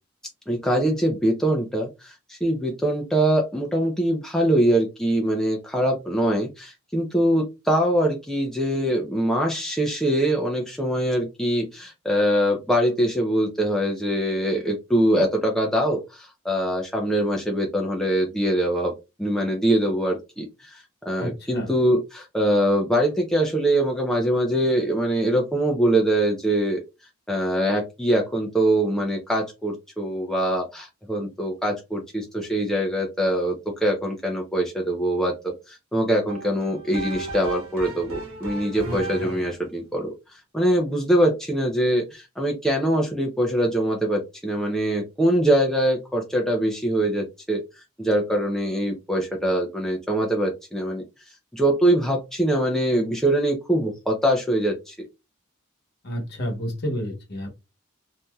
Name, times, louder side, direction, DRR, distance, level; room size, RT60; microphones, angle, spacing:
voice 1, 0.5-18.9 19.2-26.8 27.3-33.5 33.8-47.6 48.0-51.0 51.5-55.1, right 1 dB, ahead, 0 dB, 0.5 m, -23 dB
voice 2, 21.2-21.7 38.8-39.4 56.0-57.5, equal, 50° left, 1 dB, 1.1 m, -31 dB
sound 1, 36.3-39.6, right 2 dB, 90° right, 1.0 m, -35 dB
3.3 x 2.7 x 2.2 m, 0.25 s
head